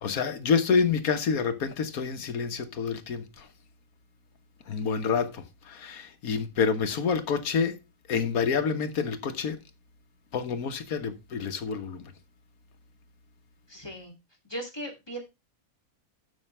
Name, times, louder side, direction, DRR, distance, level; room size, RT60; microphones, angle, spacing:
voice 1, 0.0-3.5 4.7-7.8 8.1-9.6 10.3-12.1, left 5 dB, 85° left, 1.6 m, -28 dB
voice 2, 13.7-14.1 14.4-15.2, right 1 dB, 15° left, 2.8 m, -38 dB
13.0 x 6.0 x 3.3 m
omnidirectional pair, 1.5 m